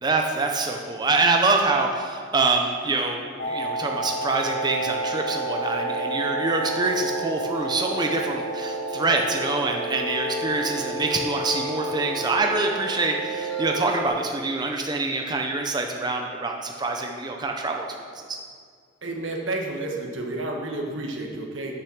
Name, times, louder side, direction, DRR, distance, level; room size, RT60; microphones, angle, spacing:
voice 1, 0.0-17.9 18.3-18.4, right 3 dB, 20° right, 2 dB, 0.6 m, -25 dB
sound 1, 3.4-14.1, right 2 dB, 50° left, 2.5 m, -30 dB
voice 2, 19.0-21.8, right 2 dB, 80° right, 1 dB, 1.5 m, -30 dB
8.6 x 6.7 x 6.4 m, 2.1 s
head